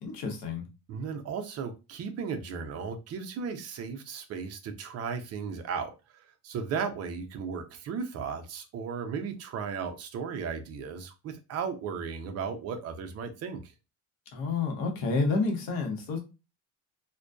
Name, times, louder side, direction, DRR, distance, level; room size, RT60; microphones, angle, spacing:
voice 1, 0.0-0.6 14.3-16.2, left 4 dB, 70° left, 0.9 m, -29 dB
voice 2, 0.9-13.7, right 6 dB, 45° right, 0.5 m, -35 dB
2.5 x 2.2 x 2.2 m
cardioid pair, 145°, 36 cm